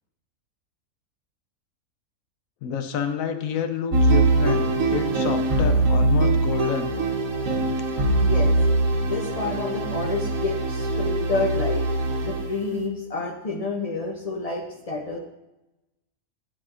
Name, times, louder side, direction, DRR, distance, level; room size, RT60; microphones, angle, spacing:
voice 1, 2.6-6.9, left 7 dB, 75° left, 8 dB, 1.0 m, -29 dB
sound 1, 3.9-12.7, right 2 dB, 70° right, 1.2 m, -22 dB
voice 2, 8.1-8.5 9.0-11.8 12.2-15.2, left 3 dB, 55° left, 3 dB, 0.4 m, -29 dB
12.5 x 4.9 x 2.5 m, 0.97 s
omnidirectional pair, 1.5 m